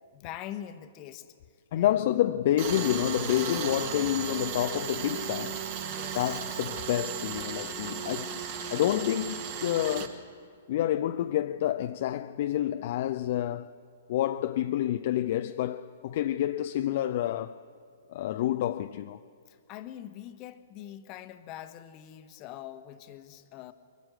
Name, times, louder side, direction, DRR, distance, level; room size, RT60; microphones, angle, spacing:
voice 1, 0.1-1.3 1.7-2.2 5.8-6.7 19.5-23.7, left 11 dB, 30° left, 1.0 m, -44 dB
voice 2, 1.7-5.6 6.1-8.4 8.7-10.2 10.7-13.7 14.1-17.6 18.1-19.2, left 12 dB, 45° left, 0.5 m, -28 dB
Tools, 2.6-10.1, right 7 dB, 40° right, 1.8 m, -35 dB
22.5 x 13.5 x 9.2 m
figure-of-eight pair, 115°, 0 cm